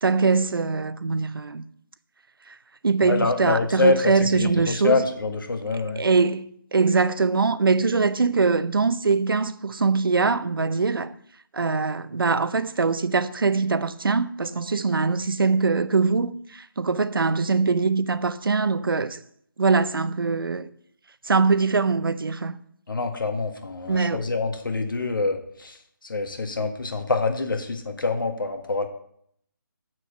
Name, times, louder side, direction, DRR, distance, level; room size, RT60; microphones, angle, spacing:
voice 1, 0.0-1.6 2.8-5.0 6.0-11.1 11.5-19.2 19.6-20.7 21.2-22.5 23.9-24.2, right 4 dB, 85° right, 0.7 m, -22 dB
voice 2, 3.0-6.0 22.9-28.9, left 3 dB, 70° left, 1.6 m, -26 dB
7.6 x 6.4 x 6.5 m
figure-of-eight pair, 170°, 11 cm